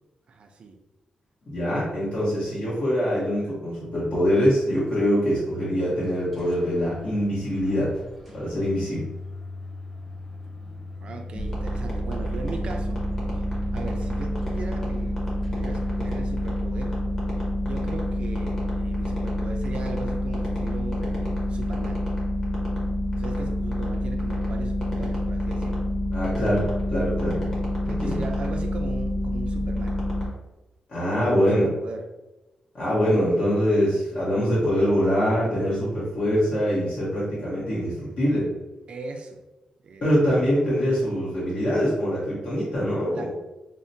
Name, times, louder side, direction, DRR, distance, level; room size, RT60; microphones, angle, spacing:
voice 1, 0.3-0.8 3.6-3.7 11.0-13.0 13.3-13.4 13.7-15.2 15.5-17.0 17.4-22.0 23.2-25.8 27.9-30.0 31.0-32.1 38.9-39.4 39.8-40.0 43.1-43.3, right 3 dB, 50° right, 4 dB, 0.4 m, -38 dB
voice 2, 1.5-8.0 8.3-9.1 26.1-27.4 27.8-28.2 30.9-31.7 32.7-38.5 40.0-43.3, equal, 55° left, -9 dB, 1.2 m, -24 dB
sound 1, 6.0-17.7, left 2 dB, ahead, 0.5 m, -41 dB
sound 2, 11.3-30.3, left 1 dB, 20° left, 1.1 m, -27 dB
5.7 x 2.1 x 2.7 m, 1.0 s
wide cardioid pair, 170°, 2 cm